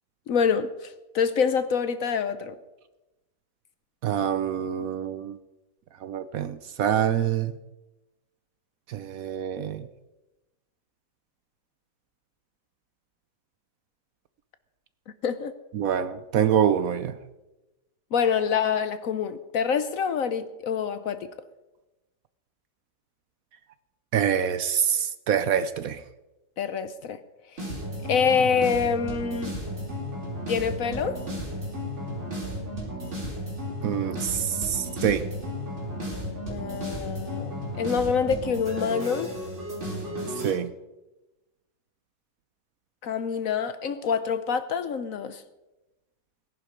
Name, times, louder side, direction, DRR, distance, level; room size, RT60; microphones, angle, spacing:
voice 1, 0.3-2.5 15.2-15.5 18.1-21.3 26.6-27.2 28.1-29.5 30.5-31.2 36.5-39.3 43.0-45.4, left 6 dB, 60° left, 12 dB, 1.0 m, -26 dB
voice 2, 4.0-5.4 6.0-7.5 8.9-9.9 15.7-17.2 24.1-26.0 33.8-35.2 40.4-40.7, right 9 dB, 65° right, 13 dB, 1.0 m, -26 dB
sound 1, 27.6-40.5, equal, 40° right, 5.0 m, -34 dB
18.0 x 11.0 x 5.1 m, 1.0 s
omnidirectional pair, 1.8 m